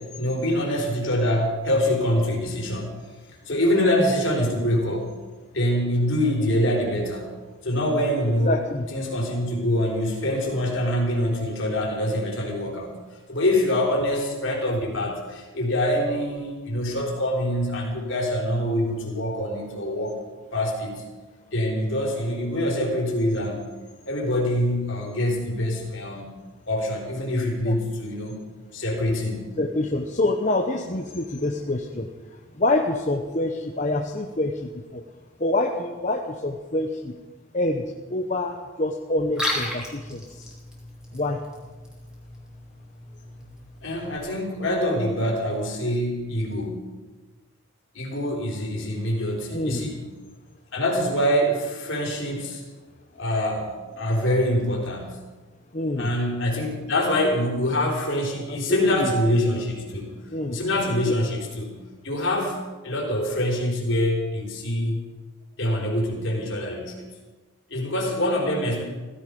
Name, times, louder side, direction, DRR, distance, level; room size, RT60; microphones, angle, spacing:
voice 1, 0.0-3.0 3.5-5.2 5.5-8.6 8.9-13.0 13.3-20.2 20.5-21.0 21.5-23.6 24.0-26.4 26.7-28.4 28.7-29.5 43.8-47.0 47.9-50.1 50.7-52.6 53.1-55.2 56.0-60.2 60.5-61.8 62.0-65.1 65.6-67.1 67.7-68.8, left 1 dB, 60° left, -1 dB, 4.1 m, -25 dB
voice 2, 8.4-8.9 27.6-27.8 29.6-32.1 32.5-35.0 35.4-37.2 37.5-37.8 38.1-40.5 41.1-41.4 49.5-49.8 55.7-56.1 58.5-59.1 60.3-60.6 61.1-61.2, left 2 dB, 35° left, 2 dB, 0.9 m, -26 dB
Liquid, 39.2-44.2, left 1 dB, 5° right, 3.0 m, -35 dB
16.5 x 15.5 x 5.3 m, 1.3 s
head